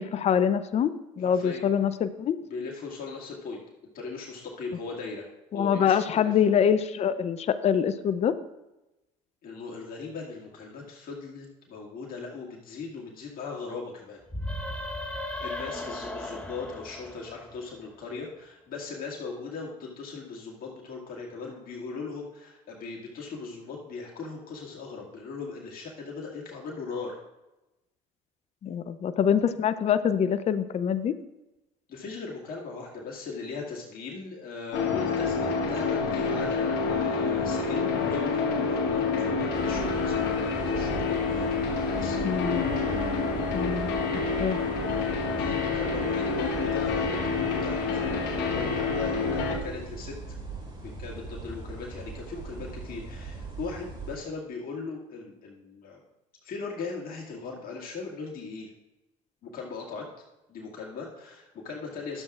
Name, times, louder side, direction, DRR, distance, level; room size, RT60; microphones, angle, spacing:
voice 1, 0.0-2.4 5.5-8.3 28.6-31.1 42.2-42.6 43.5-43.9 44.4-44.6, left 8 dB, 35° left, 12 dB, 0.5 m, -25 dB
voice 2, 1.2-1.7 2.4-3.6 3.9-5.3 5.5-6.3 9.4-14.2 15.4-27.2 31.9-38.3 38.6-42.2 45.0-50.1 51.0-56.0 56.4-58.7 59.4-60.1 60.5-62.2, left 4 dB, 55° left, -2 dB, 2.0 m, -38 dB
sound 1, 14.3-17.9, left 1 dB, 5° left, 1.1 m, -36 dB
sound 2, 34.7-49.6, left 4 dB, 70° left, 1.3 m, -28 dB
sound 3, 39.5-54.2, right 4 dB, 25° right, 2.6 m, -40 dB
12.0 x 7.6 x 2.4 m, 0.98 s
hypercardioid pair, 75°, 18 cm